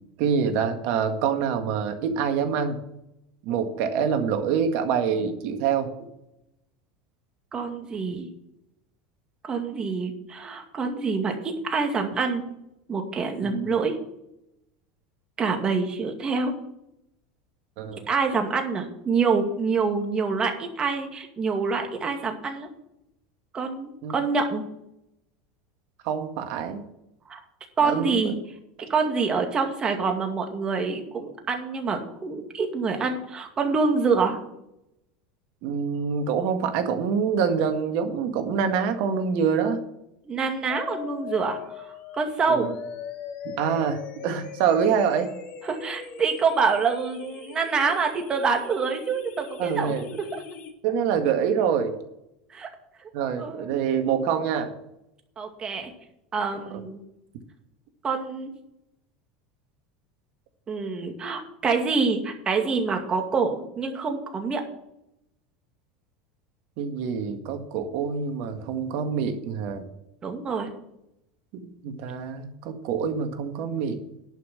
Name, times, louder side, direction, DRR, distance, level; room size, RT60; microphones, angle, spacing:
voice 1, 0.2-2.8 3.4-5.9 13.4-13.7 17.8-18.1 24.0-24.1 26.0-26.8 27.8-28.3 35.6-39.8 42.5-42.7 43.4-45.3 49.6-50.1 50.8-51.9 53.1-54.7 56.7-56.8 66.8-69.8 71.6-74.0, right 7 dB, 65° right, 6 dB, 1.8 m, -26 dB
voice 2, 7.5-8.3 9.4-12.5 12.9-14.0 15.4-16.6 17.9-22.7 23.5-24.6 27.3-27.4 27.8-28.4 28.9-34.4 40.3-42.7 45.7-50.4 52.5-52.7 53.4-53.7 55.4-55.9 56.3-57.0 58.0-58.5 60.7-64.6 70.2-70.7, right 4 dB, 30° right, 4 dB, 2.3 m, -26 dB
sound 1, 40.7-50.7, left 7 dB, 50° left, 2.3 m, -40 dB
11.0 x 5.6 x 7.7 m, 0.81 s
supercardioid pair, 110°, 3 cm